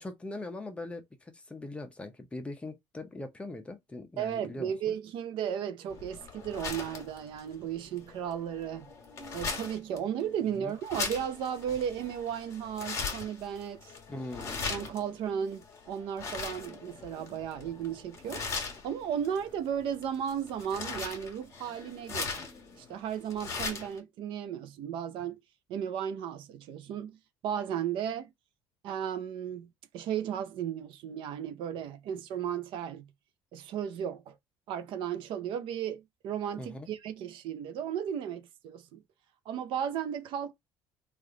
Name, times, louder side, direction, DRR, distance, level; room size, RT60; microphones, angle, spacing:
voice 1, 0.0-4.7 10.5-10.7 14.1-14.6 36.6-36.9, left 2 dB, 15° left, 0.7 m, -41 dB
voice 2, 4.2-8.9 9.3-13.9 14.7-18.4 18.8-22.4 22.8-25.4 25.7-27.1 27.4-28.3 28.8-29.7 29.9-33.1 33.5-34.3 34.7-39.0 39.5-40.5, right 9 dB, 65° right, 0.6 m, -35 dB
sound 1, 5.9-24.0, left 4 dB, 35° left, 1.4 m, -40 dB
3.2 x 2.5 x 3.8 m
cardioid pair, 135°, 9 cm